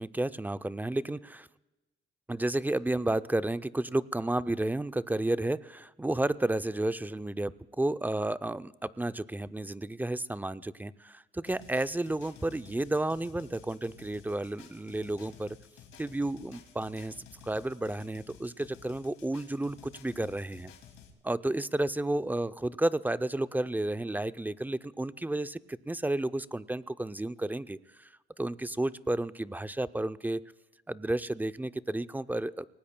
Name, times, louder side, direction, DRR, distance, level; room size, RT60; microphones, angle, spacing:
voice 1, 0.0-1.5 2.3-15.6 16.0-17.1 17.4-20.7 21.2-28.1 28.4-30.4 30.9-32.7, right 1 dB, 10° right, 13 dB, 0.4 m, -32 dB
sound 1, 11.4-21.1, left 7 dB, 85° left, 2.4 m, -54 dB
24.5 x 18.5 x 2.2 m, 1.1 s
cardioid pair, 90°, 20 cm